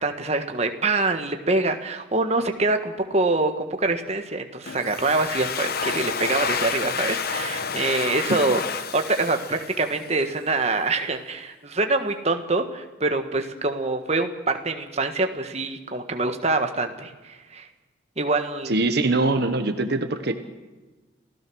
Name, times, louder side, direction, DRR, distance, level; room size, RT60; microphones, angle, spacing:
voice 1, 0.0-8.6 8.9-17.7 18.2-18.8, right 3 dB, 35° right, 6 dB, 1.5 m, -25 dB
Domestic sounds home sounds, 4.7-10.3, left 6 dB, 50° left, 1.1 m, -30 dB
voice 2, 18.6-20.3, right 2 dB, 55° right, 8 dB, 1.3 m, -23 dB
28.5 x 16.0 x 6.3 m, 1.2 s
head